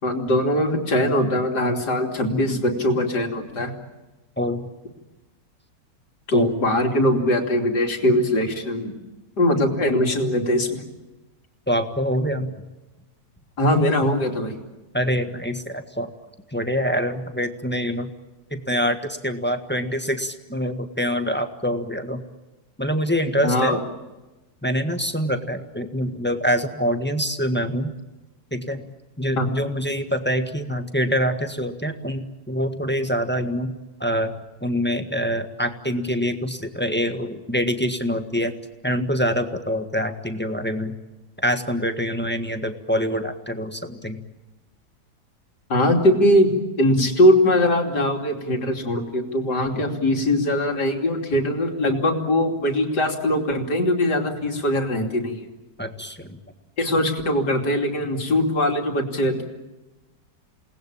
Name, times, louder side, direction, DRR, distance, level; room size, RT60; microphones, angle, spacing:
voice 1, 0.0-3.7 6.3-9.0 9.4-10.8 13.6-14.5 23.4-23.8 29.4-29.5 45.7-55.4 56.8-59.4, left 1 dB, 65° left, 3 dB, 3.5 m, -21 dB
voice 2, 2.3-2.6 4.4-4.7 6.3-6.5 11.7-12.6 14.9-16.1 16.5-18.1 18.5-22.2 22.8-23.8 24.6-27.9 28.5-28.8 29.2-33.7 34.0-34.3 34.6-38.5 38.8-41.0 41.4-44.2 46.9-47.1 55.8-56.4, equal, 5° left, 7 dB, 1.4 m, -25 dB
28.5 x 19.5 x 8.8 m, 1.1 s
omnidirectional pair, 1.9 m